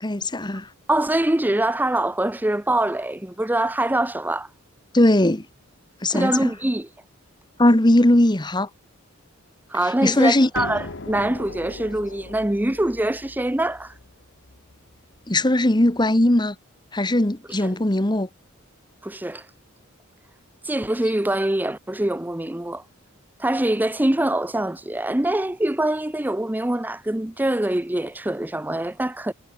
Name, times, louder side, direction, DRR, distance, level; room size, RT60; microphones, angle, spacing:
voice 1, 0.0-0.7 4.9-5.4 6.0-6.5 7.6-8.7 10.0-10.5 15.3-16.5 16.9-18.3, left 1 dB, 20° left, 1.3 m, -19 dB
voice 2, 0.9-4.5 6.1-6.9 9.7-13.9 17.5-17.7 19.0-19.4 20.6-22.8 23.4-29.3, right 1 dB, 10° right, 0.6 m, -24 dB
sound 1, 10.5-16.1, left 2 dB, 60° left, 1.6 m, -39 dB
head